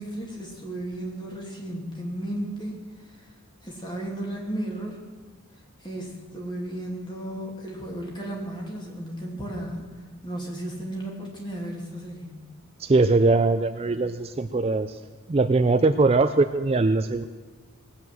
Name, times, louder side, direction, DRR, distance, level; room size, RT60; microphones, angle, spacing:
voice 1, 0.0-2.7 3.0-3.3 3.6-5.0 5.8-9.9 10.2-12.4, right 1 dB, 20° left, -1 dB, 2.7 m, -34 dB
voice 2, 12.8-15.0 15.3-17.3, right 3 dB, 25° right, 9 dB, 0.4 m, -21 dB
19.0 x 8.3 x 7.6 m, 1.4 s
head